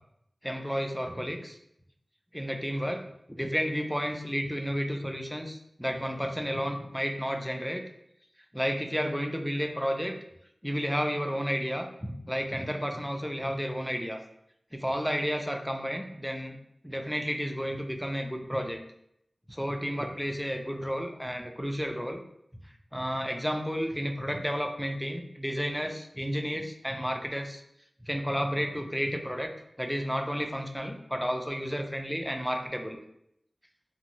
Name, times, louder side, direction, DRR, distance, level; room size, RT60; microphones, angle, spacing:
voice 1, 0.4-1.6 2.3-3.0 3.3-7.8 8.5-10.1 10.6-14.2 14.7-16.6 16.8-18.8 19.5-22.2 22.9-27.6 28.0-29.5 29.8-33.0, equal, ahead, 4 dB, 0.3 m, -32 dB
2.9 x 2.5 x 2.6 m, 0.76 s
wide cardioid pair, 75°, 0 cm